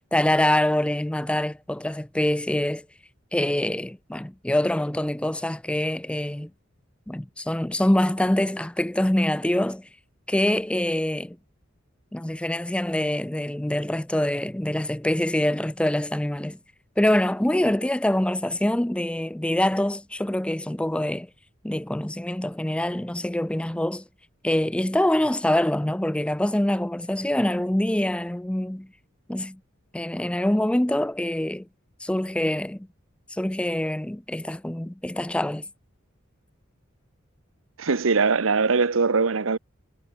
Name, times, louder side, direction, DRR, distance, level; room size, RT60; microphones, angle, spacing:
voice 1, 0.1-2.9 3.3-6.5 7.1-9.9 10.3-11.4 12.1-16.6 17.0-21.3 21.6-24.0 24.4-28.9 29.3-29.6 29.9-31.7 32.0-32.9 33.3-35.7, left 1 dB, 5° left, 0.4 m, -25 dB
voice 2, 37.8-39.6, right 4 dB, 80° right, 0.9 m, -21 dB
head